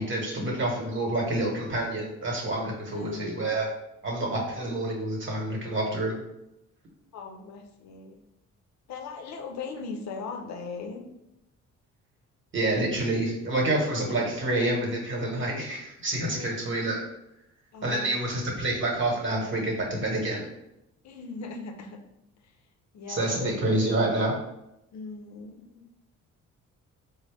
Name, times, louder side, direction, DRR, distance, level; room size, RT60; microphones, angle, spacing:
voice 1, 0.0-3.7 4.0-6.2 12.5-17.0 17.8-20.4 23.1-24.4, right 1 dB, 40° right, -1 dB, 1.2 m, -28 dB
voice 2, 2.8-3.4 7.1-8.2 8.9-11.0 16.2-16.9 17.7-18.1 18.5-18.7 21.0-22.0 22.4-22.5 22.9-23.5 24.9-25.9, left 4 dB, 65° left, 4 dB, 0.6 m, -39 dB
4.0 x 2.1 x 3.3 m, 0.85 s
cardioid pair, 90°, 30 cm